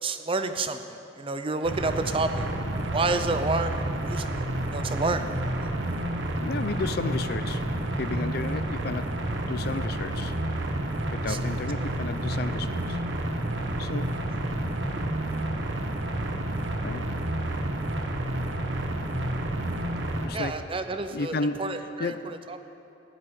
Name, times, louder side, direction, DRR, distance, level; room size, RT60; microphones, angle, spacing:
voice 1, 0.0-2.4 2.9-3.7 4.1-4.5 4.7-5.3 5.6-5.7 11.3-11.4 11.8-11.9 20.3-22.6, right 3 dB, 30° right, 8 dB, 0.6 m, -29 dB
sound 1, 1.6-20.3, right 1 dB, 75° right, 1.2 m, -30 dB
voice 2, 6.4-10.4 11.1-13.0 13.8-14.1 16.8-17.1 20.2-20.6 21.1-22.2, left 3 dB, 55° left, 12 dB, 0.5 m, -33 dB
14.5 x 6.2 x 9.8 m, 2.9 s
head